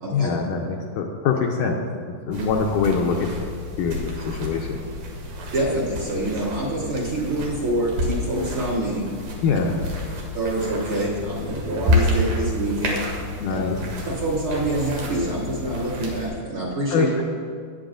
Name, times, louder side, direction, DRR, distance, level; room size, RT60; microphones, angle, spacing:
voice 1, 0.1-1.8 2.3-3.3 3.8-4.9 9.4-9.7 13.4-13.8 16.9-17.2, left 5 dB, 80° left, 1 dB, 2.0 m, -24 dB
sound 1, 2.3-16.3, left 1 dB, 85° right, 3.4 m, -29 dB
voice 2, 5.5-9.1 9.5-9.6 10.3-13.0 13.5-13.6 14.1-17.1, right 1 dB, 50° right, -6 dB, 1.8 m, -26 dB
17.5 x 8.9 x 2.5 m, 2.1 s
omnidirectional pair, 4.1 m